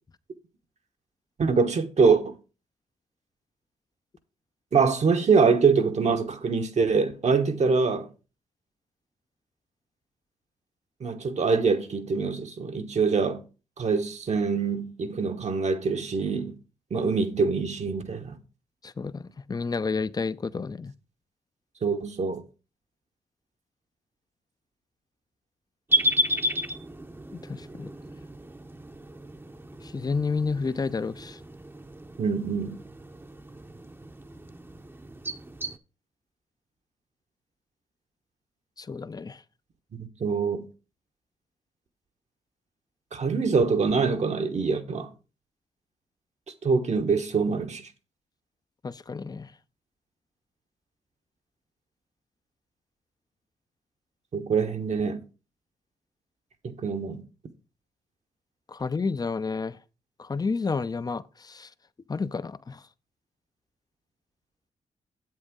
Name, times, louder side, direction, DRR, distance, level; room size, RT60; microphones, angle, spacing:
voice 1, 1.4-2.4 4.7-8.1 11.0-13.4 13.8-16.6 16.9-18.4 21.8-22.4 32.2-32.8 40.0-40.7 43.1-45.1 46.6-47.9 54.3-55.2 56.6-57.2, right 5 dB, 55° right, 1.1 m, -24 dB
voice 2, 18.8-20.9 27.5-27.9 29.9-31.4 38.8-39.4 48.8-49.5 58.7-59.8 60.2-61.7 62.1-62.8, left 4 dB, 30° left, 0.5 m, -30 dB
sound 1, 25.9-35.8, equal, 15° right, 0.7 m, -33 dB
7.8 x 7.6 x 3.6 m
supercardioid pair, 45°, 13 cm